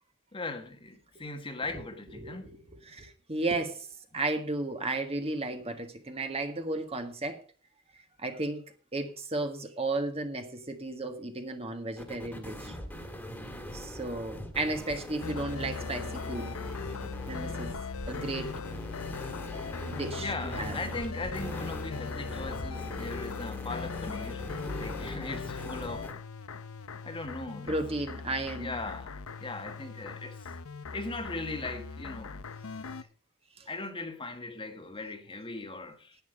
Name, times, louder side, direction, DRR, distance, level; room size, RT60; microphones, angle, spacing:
voice 1, 0.3-2.6 20.2-24.5 24.8-26.1 27.0-27.8 28.6-29.1 29.4-30.5 30.9-32.4 33.7-36.2, left 2 dB, 25° left, 1.4 m, -39 dB
voice 2, 2.1-3.9 4.1-7.4 8.2-8.6 8.9-12.8 13.7-16.5 17.3-17.8 18.1-18.5 19.8-20.8 27.7-28.7 33.6-33.7, right 2 dB, 30° right, 1.6 m, -34 dB
sound 1, 12.0-26.1, equal, 5° left, 2.1 m, -42 dB
sound 2, 15.2-33.0, left 4 dB, 70° left, 0.7 m, -39 dB
10.5 x 9.7 x 5.2 m
head